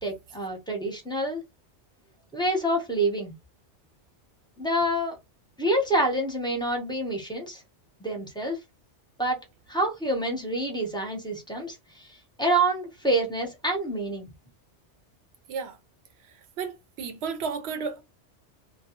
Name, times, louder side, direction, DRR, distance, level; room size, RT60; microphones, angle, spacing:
voice 1, 0.0-1.4 2.3-3.3 4.6-5.2 5.6-7.6 8.0-8.6 9.2-9.4 9.7-14.3, right 1 dB, 5° left, 0.6 m, -27 dB
voice 2, 16.6-18.0, right 5 dB, 70° right, 0.8 m, -32 dB
2.3 x 2.1 x 2.9 m
omnidirectional pair, 1.2 m